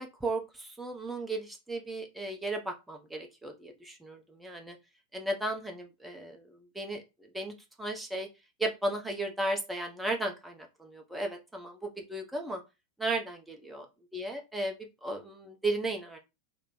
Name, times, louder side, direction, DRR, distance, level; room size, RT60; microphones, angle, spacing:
voice 1, 0.0-4.8 5.1-8.3 8.6-12.6 13.0-13.8 14.1-16.2, right 2 dB, 5° right, 3 dB, 0.8 m, -35 dB
3.3 x 2.1 x 3.9 m, 0.25 s
figure-of-eight pair, 90°, 0 cm